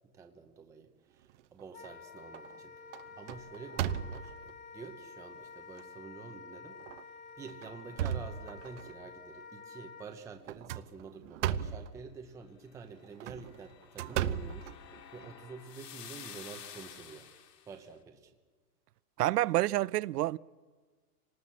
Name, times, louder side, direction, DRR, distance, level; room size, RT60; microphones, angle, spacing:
voice 1, 0.1-2.8 3.2-6.8 7.4-17.3 17.7-18.3, right 5 dB, 5° right, 0.8 m, -48 dB
sound 1, 1.3-1.9 2.3-2.6 2.9-4.5 5.2-5.3 5.8-5.9 6.8-7.0 7.5-8.9 10.4-11.9 13.0-15.3, right 10 dB, 45° right, 0.9 m, -36 dB
Wind instrument woodwind instrument, 1.7-10.1, left 5 dB, 20° left, 1.2 m, -50 dB
sound 2, 13.1-17.8, left 9 dB, 80° left, 2.8 m, -50 dB
voice 2, 19.2-20.4, right 15 dB, 75° right, 0.6 m, -28 dB
26.0 x 19.0 x 7.4 m
supercardioid pair, 160°, 48 cm